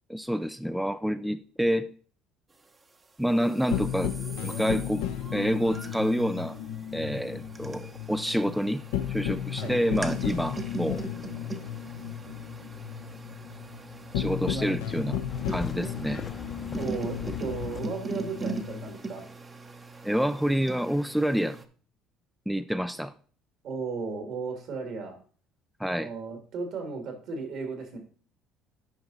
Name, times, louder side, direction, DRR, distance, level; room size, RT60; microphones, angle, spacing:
voice 1, 0.1-1.9 3.2-4.1 4.4-5.0 5.3-6.6 6.9-8.8 9.1-11.0 14.1-15.2 15.5-16.2 20.0-21.6 22.5-23.1 25.8-26.1, equal, ahead, 11 dB, 0.3 m, -28 dB
sound 1, 3.4-21.6, right 3 dB, 25° right, 0.8 m, -41 dB
sound 2, 3.7-18.9, left 10 dB, 90° left, 0.7 m, -34 dB
sound 3, 15.3-17.8, left 4 dB, 25° left, 0.7 m, -40 dB
voice 2, 16.8-19.2 23.6-25.2 26.0-28.0, right 4 dB, 65° right, 5 dB, 2.2 m, -35 dB
8.9 x 5.1 x 3.9 m, 0.42 s
supercardioid pair, 95°, 0 cm